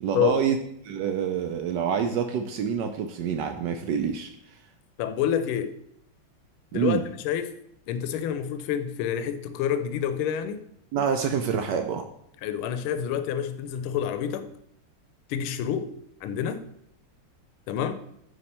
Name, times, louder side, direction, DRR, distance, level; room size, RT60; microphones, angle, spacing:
voice 1, 0.0-4.3 6.7-7.0 10.9-12.0, right 7 dB, 80° right, 0.9 m, -27 dB
voice 2, 5.0-5.7 6.7-7.5 7.9-10.6 12.4-14.5 15.3-15.9 16.2-16.6 17.7-18.0, left 9 dB, 80° left, 1.4 m, -28 dB
9.3 x 3.1 x 4.3 m
omnidirectional pair, 2.4 m